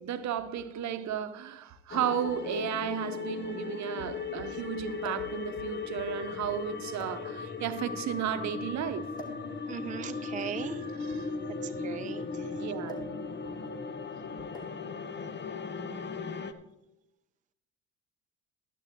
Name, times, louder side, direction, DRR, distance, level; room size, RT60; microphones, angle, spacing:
voice 1, 0.0-9.1 11.0-11.3 12.5-13.0, right 9 dB, 55° right, 0.9 m, -34 dB
sound 1, 1.3-1.4 2.5-2.6 2.8-2.9 5.0-5.4 6.2-6.4 7.0-7.7 9.1-9.5 10.6-12.2 12.9-13.2 13.5-13.8 14.5-14.9 15.9-16.1, right 2 dB, 10° left, 2.5 m, -46 dB
sound 2, 1.9-16.5, left 5 dB, 30° left, 0.8 m, -37 dB
voice 2, 9.7-10.8 11.5-12.5, right 8 dB, 20° right, 0.5 m, -39 dB
12.0 x 11.5 x 3.0 m
supercardioid pair, 70°, 35 cm